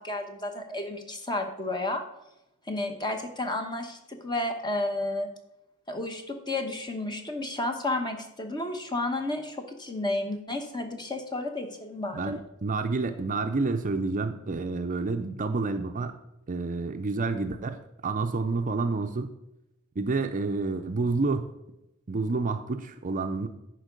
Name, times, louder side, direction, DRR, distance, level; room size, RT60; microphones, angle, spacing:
voice 1, 0.0-2.0 2.7-5.3 5.9-12.4, left 2 dB, 20° left, 5 dB, 1.0 m, -32 dB
voice 2, 12.1-16.2 16.5-19.3 20.0-21.5 22.1-23.5, right 3 dB, 35° right, 7 dB, 0.5 m, -29 dB
10.5 x 4.6 x 5.2 m, 0.88 s
head